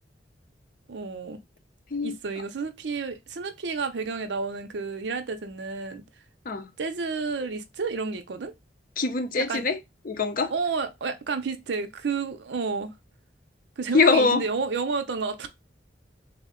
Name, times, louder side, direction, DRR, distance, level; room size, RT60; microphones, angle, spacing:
voice 1, 0.9-1.4 2.0-6.0 6.8-8.5 9.5-9.6 10.5-12.9 13.8-15.5, right 4 dB, 80° right, 0.6 m, -30 dB
voice 2, 9.0-9.8 10.0-10.5 13.9-14.4, left 4 dB, 50° left, 0.5 m, -23 dB
3.5 x 2.1 x 3.6 m
head